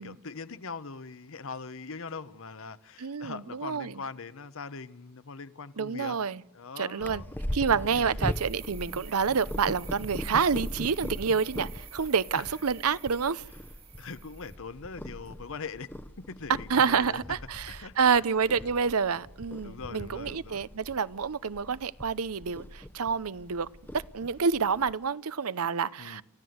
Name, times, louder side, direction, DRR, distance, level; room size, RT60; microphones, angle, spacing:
voice 1, 0.0-6.2 6.5-7.3 7.9-8.3 12.4-12.5 14.0-15.9 16.2-17.2 17.7-18.2 18.6-18.7 19.6-20.6 26.0-26.2, left 4 dB, 65° left, 0.9 m, -41 dB
voice 2, 3.0-3.9 5.8-6.4 6.8-7.2 7.5-13.4 16.7-23.7 23.9-26.2, right 6 dB, 80° right, 0.7 m, -28 dB
Purr, 7.0-24.9, equal, 10° left, 0.8 m, -40 dB
sound 1, 8.3-14.6, right 8 dB, 25° right, 1.3 m, -50 dB
29.0 x 14.5 x 7.9 m
head